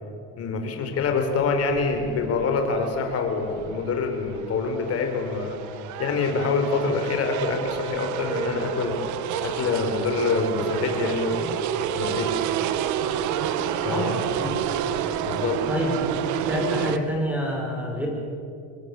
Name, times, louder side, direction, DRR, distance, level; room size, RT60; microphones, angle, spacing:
voice 1, 0.4-5.6 6.0-8.9 9.4-11.5 11.9-12.3 13.8-14.1 15.3-15.6, left 4 dB, 50° left, 4 dB, 4.9 m, -25 dB
sound 1, 1.0-17.0, right 10 dB, 65° right, 1.5 m, -30 dB
voice 2, 13.9-14.8 15.7-16.1 16.5-18.1, equal, 5° right, 0 dB, 6.4 m, -28 dB
25.5 x 21.0 x 8.1 m, 2.6 s
cardioid pair, 125°, 32 cm